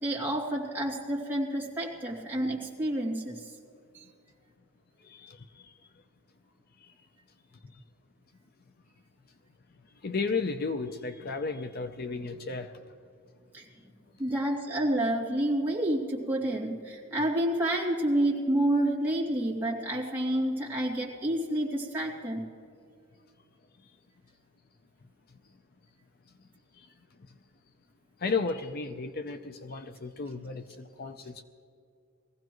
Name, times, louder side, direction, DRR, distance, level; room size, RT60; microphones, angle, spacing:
voice 1, 0.0-3.5 3.9-4.1 13.5-13.7 14.2-22.4, right 1 dB, 10° right, -5 dB, 2.6 m, -29 dB
voice 2, 5.0-5.7 10.0-12.7 28.2-31.4, left 4 dB, 50° left, 8 dB, 0.6 m, -34 dB
21.5 x 16.0 x 3.1 m, 2.5 s
head